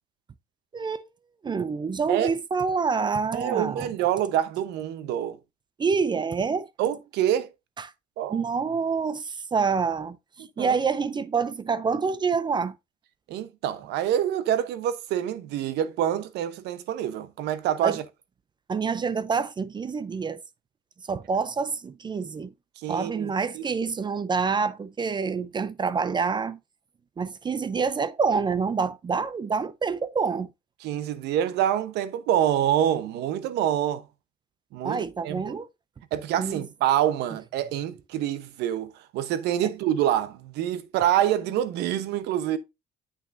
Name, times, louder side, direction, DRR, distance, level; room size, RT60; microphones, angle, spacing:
voice 1, 0.7-1.1 1.4-3.9 5.8-6.7 7.8-7.9 8.3-12.8 17.8-18.0 18.7-20.4 21.1-22.5 22.9-26.6 27.2-30.5 34.8-35.7 36.4-36.6, right 5 dB, 25° right, 0.5 m, -27 dB
voice 2, 3.3-5.4 6.8-7.5 8.2-8.4 10.4-10.8 13.3-18.0 22.8-23.6 30.8-34.0 34.7-35.4 36.1-42.6, right 11 dB, 85° right, 0.9 m, -26 dB
8.5 x 5.9 x 2.6 m
cardioid pair, 110°, 17 cm